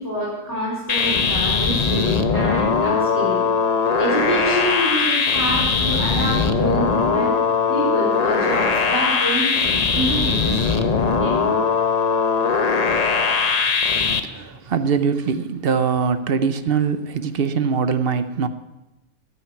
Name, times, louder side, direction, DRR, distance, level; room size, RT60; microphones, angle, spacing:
voice 1, 0.0-3.4 4.0-7.4 7.7-10.8 11.2-11.4, right 1 dB, 10° right, 4.0 m, -26 dB
sound 1, 0.9-14.2, left 5 dB, 40° left, 0.6 m, -20 dB
voice 2, 14.2-18.5, right 6 dB, 50° right, 0.7 m, -22 dB
14.0 x 9.0 x 5.9 m
omnidirectional pair, 1.5 m